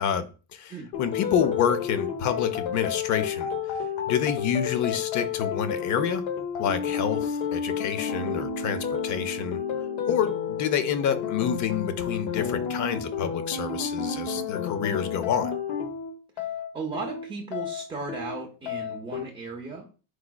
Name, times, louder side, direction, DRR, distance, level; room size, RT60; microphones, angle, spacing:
voice 1, 0.0-0.7 1.0-3.5 4.1-6.2 6.6-9.6 10.1-15.5, left 8 dB, 40° left, 12 dB, 0.5 m, -28 dB
sound 1, 0.9-19.2, left 7 dB, 70° left, 1.0 m, -31 dB
voice 2, 16.4-19.9, right 3 dB, 10° right, -1 dB, 0.5 m, -36 dB
4.7 x 3.9 x 2.2 m, 0.34 s
cardioid pair, 145°, 50 cm